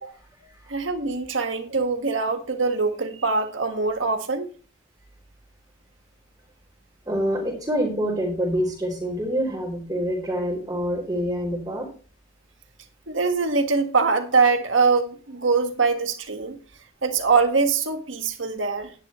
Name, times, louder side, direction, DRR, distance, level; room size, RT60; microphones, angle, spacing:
voice 1, 0.7-4.5 13.1-16.6 17.0-18.9, right 4 dB, 85° right, 1.7 m, -23 dB
voice 2, 7.0-11.9, equal, 20° right, 3.3 m, -26 dB
11.0 x 10.5 x 3.1 m
head